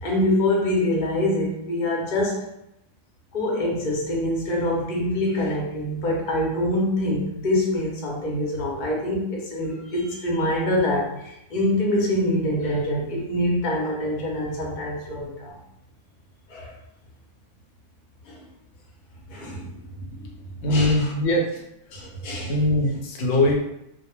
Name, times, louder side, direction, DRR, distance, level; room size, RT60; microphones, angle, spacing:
voice 1, 0.0-2.4 3.3-15.6 16.5-16.7 18.3-18.5 19.3-20.1 20.6-21.1 21.9-22.5, left 1 dB, 50° left, -2 dB, 0.7 m, -25 dB
voice 2, 20.6-21.6 22.5-23.6, left 1 dB, 85° left, 0 dB, 0.9 m, -21 dB
2.1 x 2.0 x 3.0 m, 0.81 s
omnidirectional pair, 1.3 m